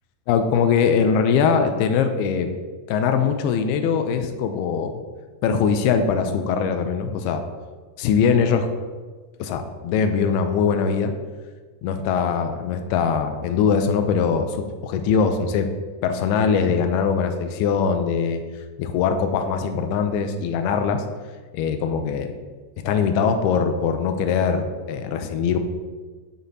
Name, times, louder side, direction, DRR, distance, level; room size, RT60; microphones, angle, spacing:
voice 1, 0.3-2.5 2.9-4.9 5.4-7.4 8.0-8.7 9.4-11.1 11.8-15.7 16.0-18.4 18.8-21.0 21.5-22.3 22.8-25.6, left 6 dB, 85° left, 6 dB, 2.3 m, -21 dB
11.5 x 7.2 x 2.8 m, 1.4 s
omnidirectional pair, 5.1 m